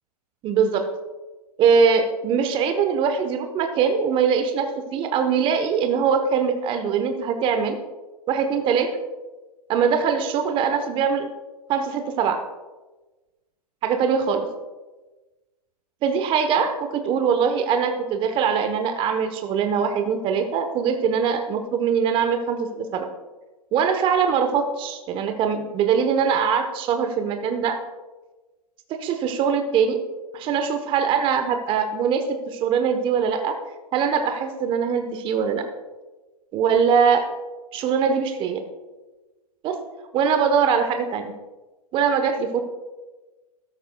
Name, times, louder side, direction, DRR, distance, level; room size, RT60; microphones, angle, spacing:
voice 1, 0.4-0.8 1.6-7.8 8.3-8.9 9.7-11.3 11.7-12.4 13.8-14.4 16.0-23.1 23.7-27.8 28.9-30.0 30.3-33.5 33.9-35.6 36.5-37.2 37.7-38.6 39.6-39.8 40.1-41.3 41.9-42.6, right 6 dB, 25° right, 7 dB, 0.9 m, -22 dB
13.5 x 12.5 x 2.2 m, 1.2 s
hypercardioid pair, 120°, 21 cm